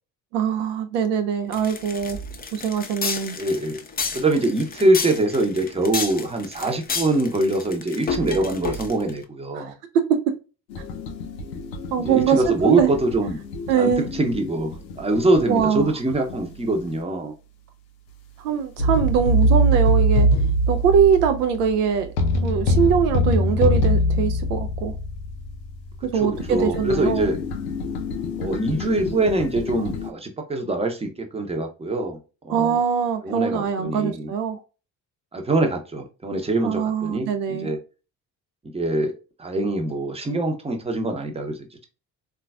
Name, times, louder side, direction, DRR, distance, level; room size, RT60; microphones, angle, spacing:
voice 1, 0.3-2.2 2.5-3.4 9.5-9.7 9.9-10.3 11.9-12.9 13.7-14.1 15.5-15.9 18.4-20.3 20.7-22.1 22.4-24.9 26.0-27.3 32.5-34.6 36.6-37.7, right 7 dB, 70° right, 0.5 m, -22 dB
sound 1, 1.5-9.2, left 4 dB, 20° left, 0.5 m, -31 dB
voice 2, 3.4-3.8 4.1-9.7 12.0-13.4 13.8-17.3 26.1-27.4 28.4-32.2 32.4-32.8 33.2-34.3 35.3-37.8 38.7-39.1 39.4-41.8, right 2 dB, 10° right, 0.8 m, -24 dB
sound 2, 10.7-16.9 18.8-30.1, equal, 85° left, 0.5 m, -24 dB
3.8 x 2.4 x 2.3 m
figure-of-eight pair, 45°, 49 cm